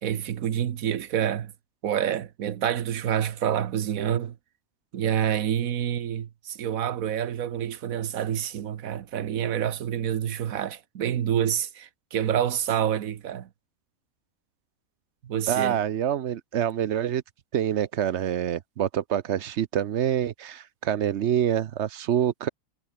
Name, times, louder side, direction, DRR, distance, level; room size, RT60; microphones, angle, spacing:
voice 1, 0.0-1.5 1.8-4.4 4.9-13.5 15.2-15.8, right 9 dB, 85° right, 1.4 m, -27 dB
voice 2, 15.5-17.2 17.5-22.5, right 10 dB, 60° right, 0.9 m, -26 dB
omnidirectional pair, 1.4 m